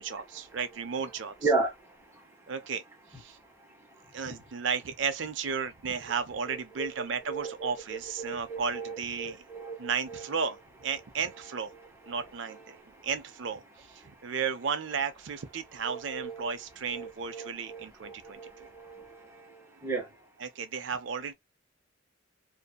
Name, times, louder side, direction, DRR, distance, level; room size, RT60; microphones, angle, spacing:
voice 1, 0.0-1.3 2.5-2.8 3.1-3.4 4.1-9.4 9.8-10.6 10.8-11.7 12.1-12.8 13.0-18.7 20.4-21.3, right 6 dB, 65° right, 0.5 m, -34 dB
voice 2, 1.4-2.3 3.6-4.4 6.4-10.3 11.7-12.2 12.7-13.1 15.8-16.5 16.9-20.1, right 3 dB, 15° right, 1.1 m, -36 dB
2.6 x 2.6 x 2.2 m
head